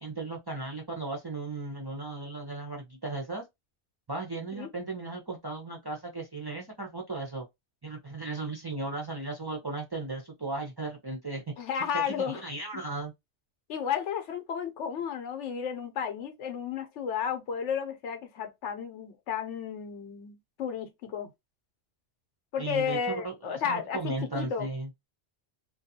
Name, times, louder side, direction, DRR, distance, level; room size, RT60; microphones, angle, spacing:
voice 1, 0.0-3.4 4.1-7.5 7.8-11.4 11.8-13.1 22.6-24.9, right 3 dB, 30° right, 0.4 m, -36 dB
voice 2, 11.6-12.4 13.7-21.3 22.5-24.7, left 7 dB, 90° left, 1.0 m, -33 dB
2.4 x 2.2 x 2.7 m
omnidirectional pair, 1.2 m